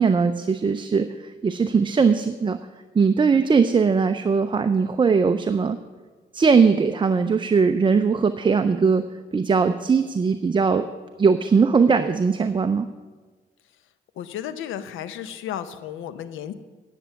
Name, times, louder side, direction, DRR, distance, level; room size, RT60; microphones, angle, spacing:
voice 1, 0.0-2.6 2.9-5.8 6.3-10.9 11.2-12.9, right 5 dB, 25° right, 9 dB, 0.5 m, -20 dB
voice 2, 14.2-16.5, left 10 dB, 80° left, 12 dB, 0.7 m, -33 dB
9.8 x 7.0 x 8.1 m, 1.3 s
cardioid pair, 90°, 20 cm